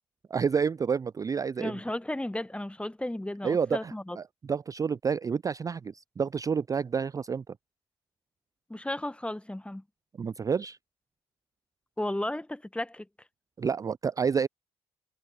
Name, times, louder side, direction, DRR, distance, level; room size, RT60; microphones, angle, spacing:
voice 1, 0.3-1.8 3.4-7.6 10.2-10.8 13.6-14.5, right 6 dB, 25° right, 0.3 m, -29 dB
voice 2, 1.6-4.2 8.7-9.8 12.0-13.1, left 1 dB, 10° left, 1.3 m, -34 dB
figure-of-eight pair, 40°, 14 cm